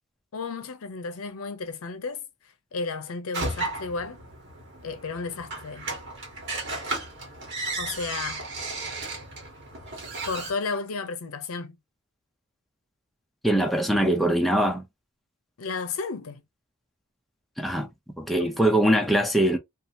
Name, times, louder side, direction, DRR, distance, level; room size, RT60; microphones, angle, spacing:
voice 1, 0.3-2.2 2.7-4.2 4.8-5.9 7.8-8.4 10.2-11.8 15.6-16.4, left 4 dB, 70° left, 0.6 m, -33 dB
sound 1, 3.3-10.5, right 2 dB, 55° right, 1.3 m, -34 dB
voice 2, 13.4-14.8 17.6-19.6, right 1 dB, ahead, 0.4 m, -22 dB
2.7 x 2.4 x 2.6 m
head